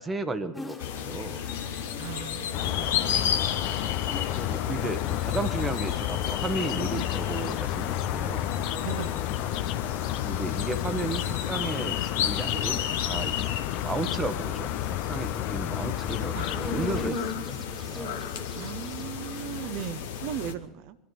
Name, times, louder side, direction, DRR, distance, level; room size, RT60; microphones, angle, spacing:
voice 1, 0.0-1.4 4.3-8.5 10.2-14.7 15.0-18.2, right 3 dB, 20° right, 10 dB, 1.1 m, -34 dB
sound 1, 0.5-20.5, left 2 dB, 10° left, 1.8 m, -42 dB
sound 2, 0.8-20.5, left 9 dB, 65° left, 1.1 m, -33 dB
voice 2, 2.0-3.4 8.8-9.1 16.3-16.5 18.6-21.0, right 11 dB, 55° right, 14 dB, 0.9 m, -37 dB
sound 3, 2.5-17.1, left 13 dB, 50° left, 0.6 m, -31 dB
24.0 x 11.5 x 4.5 m, 0.94 s
figure-of-eight pair, 75°, 0 cm